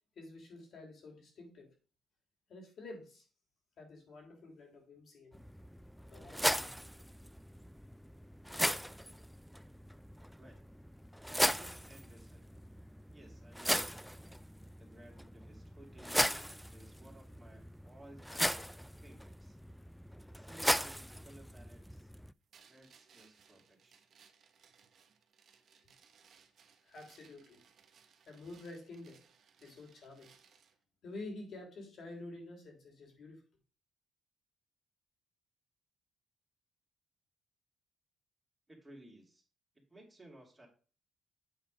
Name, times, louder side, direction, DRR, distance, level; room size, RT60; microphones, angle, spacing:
voice 1, 0.1-1.7 2.5-3.3 3.8-5.4 6.1-6.8 26.8-27.6 28.2-29.2 29.6-30.3 31.0-33.4, left 2 dB, 60° left, 0 dB, 3.4 m, -49 dB
sound 1, 5.3-22.3, equal, ahead, 0.3 m, -38 dB
voice 2, 11.2-12.5 13.1-14.2 14.8-16.3 16.7-19.6 20.3-22.1 22.7-23.9 38.7-39.4 39.7-40.7, right 1 dB, 15° right, 0 dB, 2.8 m, -58 dB
sound 2, 22.5-30.8, right 6 dB, 60° right, 1.1 m, -65 dB
8.3 x 4.3 x 5.2 m, 0.37 s
cardioid pair, 90°, 0 cm